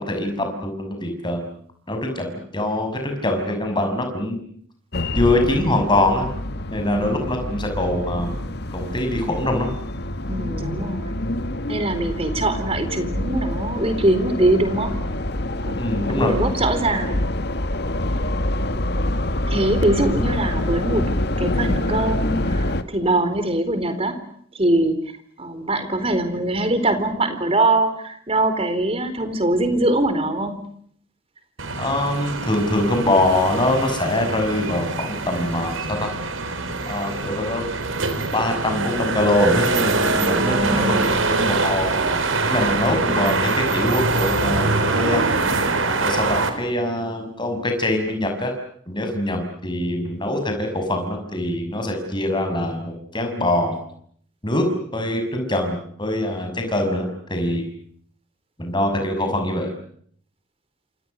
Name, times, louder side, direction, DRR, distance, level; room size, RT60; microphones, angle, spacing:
voice 1, 0.0-1.4 1.9-4.4 5.1-6.3 6.7-8.4 8.7-9.7 15.8-16.4 31.8-36.1 36.9-37.6 38.3-42.1 42.4-45.3 46.0-48.5 48.9-53.8 54.4-54.7 54.9-57.7 58.6-59.7, left 1 dB, 25° left, 4 dB, 6.1 m, -23 dB
sound 1, 4.9-22.8, left 1 dB, 55° left, 1.8 m, -26 dB
voice 2, 10.3-11.2 11.7-15.0 15.6-15.7 16.1-17.2 19.5-21.1 21.4-24.2 24.5-25.1 25.4-30.7 40.2-41.1, right 1 dB, 30° right, 10 dB, 4.2 m, -22 dB
sound 2, 31.6-46.5, right 3 dB, 80° right, 4.4 m, -23 dB
28.5 x 27.5 x 6.6 m, 0.63 s
head